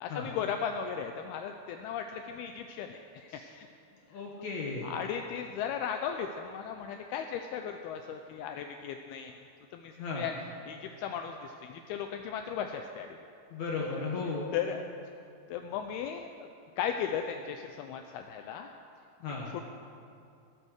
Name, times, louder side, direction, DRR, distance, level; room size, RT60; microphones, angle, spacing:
voice 1, 0.0-3.7 4.8-9.4 9.7-10.3 10.7-13.2 14.5-14.8 15.5-16.5 16.8-18.7 19.5-19.6, left 8 dB, 90° left, 5 dB, 2.2 m, -36 dB
voice 2, 4.1-4.9 10.0-10.3 13.5-14.5 19.2-19.5, left 4 dB, 65° left, -2 dB, 1.8 m, -35 dB
17.0 x 8.7 x 6.4 m, 2.5 s
omnidirectional pair, 5.1 m